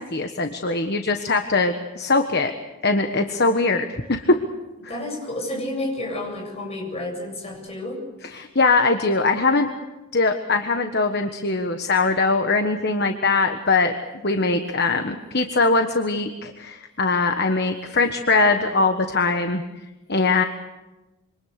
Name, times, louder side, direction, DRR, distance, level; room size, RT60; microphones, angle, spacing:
voice 1, 0.0-2.5 2.8-4.4 8.3-9.7 10.1-13.9 14.2-19.6 20.1-20.4, left 3 dB, 45° left, 6 dB, 1.4 m, -21 dB
voice 2, 4.9-8.0, left 1 dB, 30° left, 0 dB, 7.9 m, -30 dB
27.0 x 25.5 x 6.7 m, 1.1 s
head